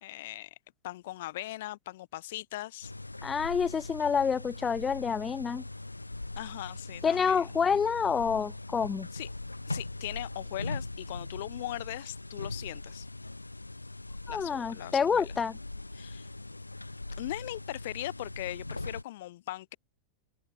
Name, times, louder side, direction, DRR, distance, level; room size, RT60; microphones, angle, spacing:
voice 1, 0.0-0.6 0.8-2.9 6.4-7.8 9.1-9.3 9.7-13.1 14.3-15.3 15.9-16.3 17.2-19.8, left 16 dB, 55° left, 3.4 m, -39 dB
sound 1, 2.8-19.0, left 2 dB, 85° left, 1.9 m, -41 dB
voice 2, 3.2-5.6 7.0-9.1 14.3-15.6, left 6 dB, 20° left, 0.4 m, -28 dB
figure-of-eight pair, 90°, 0 cm